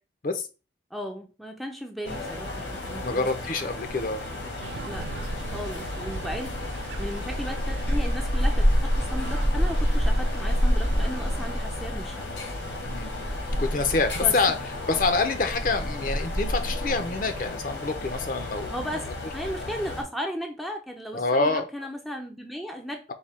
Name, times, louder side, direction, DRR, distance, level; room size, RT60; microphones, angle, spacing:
voice 1, 0.9-3.5 4.9-5.1 5.5-6.6 7.0-12.3 14.2-14.6 18.7-23.0, equal, ahead, 2 dB, 0.4 m, -36 dB
sound 1, 2.0-20.0, equal, 85° left, 1.5 m, -29 dB
voice 2, 3.0-4.2 12.8-13.1 13.6-14.6 14.9-18.9 21.1-21.7, left 3 dB, 45° left, 7 dB, 0.6 m, -26 dB
sound 2, 4.6-11.6, right 5 dB, 80° right, 0.4 m, -42 dB
4.8 x 2.2 x 4.2 m, 0.31 s
head